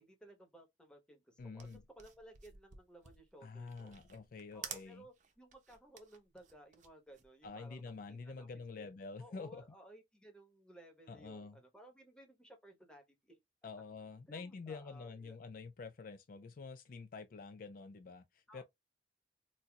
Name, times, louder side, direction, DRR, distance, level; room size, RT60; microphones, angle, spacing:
voice 1, 0.0-3.9 4.5-8.5 8.7-8.9 9.2-13.4 14.3-15.4 18.5-18.6, right 1 dB, 5° left, 1.0 m, -58 dB
voice 2, 1.4-1.8 3.4-5.0 7.4-9.6 11.1-11.6 13.6-18.6, left 4 dB, 50° left, 0.4 m, -48 dB
sound 1, 1.6-8.1, right 7 dB, 45° right, 0.7 m, -52 dB
4.1 x 2.5 x 2.2 m
head